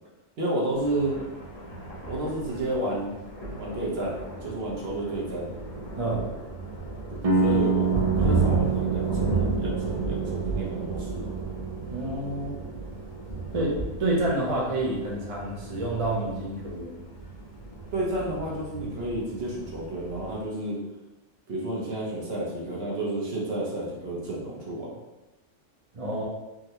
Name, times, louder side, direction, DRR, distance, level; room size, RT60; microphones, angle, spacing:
voice 1, 0.4-1.2 2.1-3.2 3.6-4.1 4.4-5.5 7.1-11.3 17.9-20.8 21.5-25.0, right 1 dB, 60° right, -4 dB, 1.0 m, -31 dB
Thunder, 0.8-20.5, right 3 dB, 40° left, 0.6 m, -33 dB
sound 1, 7.2-13.0, right 5 dB, 75° right, 0.3 m, -28 dB
voice 2, 11.9-12.5 13.5-17.0 25.9-26.2, right 1 dB, 35° right, -4 dB, 0.6 m, -28 dB
3.6 x 2.1 x 2.9 m, 1.0 s
omnidirectional pair, 1.3 m